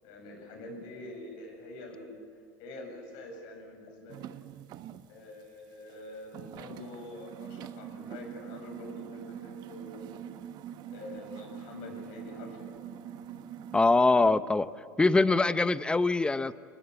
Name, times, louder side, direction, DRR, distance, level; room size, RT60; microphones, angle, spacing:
voice 1, 0.0-2.2 2.6-4.3 5.1-10.2 10.9-12.7 15.3-15.6, left 2 dB, 70° left, 3 dB, 8.0 m, -45 dB
sound 1, 4.1-5.1 5.4-5.5 5.9-6.0 6.3-14.0, right 10 dB, 55° right, 1.2 m, -44 dB
voice 2, 13.7-14.7 15.0-16.5, left 3 dB, 10° left, 14 dB, 0.8 m, -23 dB
30.0 x 20.5 x 8.2 m, 2.2 s
supercardioid pair, 105°, 9 cm